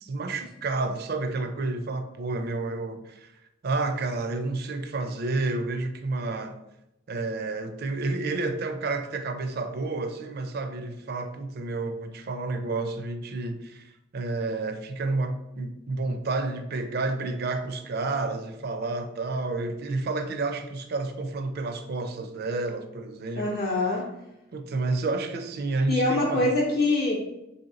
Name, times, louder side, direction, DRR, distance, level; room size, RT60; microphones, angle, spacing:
voice 1, 0.0-3.3 3.6-6.6 7.1-23.5 24.5-26.5, right 3 dB, 55° right, 8 dB, 0.4 m, -30 dB
voice 2, 23.4-24.0 25.9-27.2, left 2 dB, 50° left, -5 dB, 0.6 m, -24 dB
3.3 x 2.8 x 3.7 m, 0.88 s
head